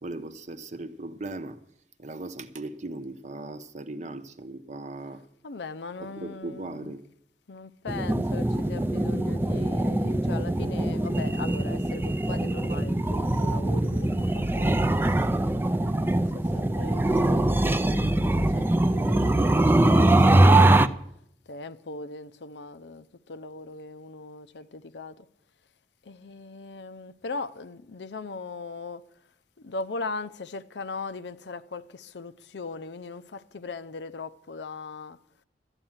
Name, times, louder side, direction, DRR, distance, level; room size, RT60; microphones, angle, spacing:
voice 1, 0.0-1.6 2.0-5.2 6.0-7.0, right 2 dB, 45° right, 0.8 m, -38 dB
voice 2, 5.4-7.0 7.5-15.0 15.8-20.9 21.5-25.3 26.1-29.0 29.6-35.2, left 3 dB, 80° left, 0.6 m, -39 dB
sound 1, 7.9-20.9, right 1 dB, 15° right, 0.4 m, -22 dB
12.5 x 8.8 x 7.2 m
head